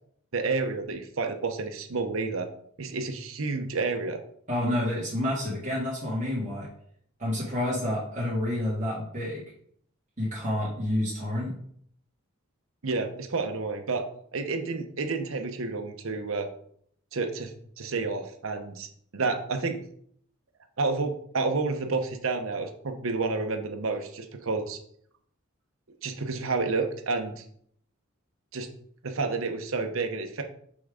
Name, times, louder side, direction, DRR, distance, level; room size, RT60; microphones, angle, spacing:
voice 1, 0.3-2.5 2.8-4.2 12.8-14.0 14.3-16.5 17.1-17.5 17.8-18.9 19.1-19.8 20.8-24.8 26.0-27.4 28.5-28.7 29.0-30.4, right 3 dB, 80° right, 5 dB, 0.8 m, -30 dB
voice 2, 4.5-6.7 7.2-9.4 10.2-11.5, left 1 dB, 35° right, -7 dB, 1.8 m, -29 dB
5.9 x 3.6 x 4.9 m, 0.64 s
head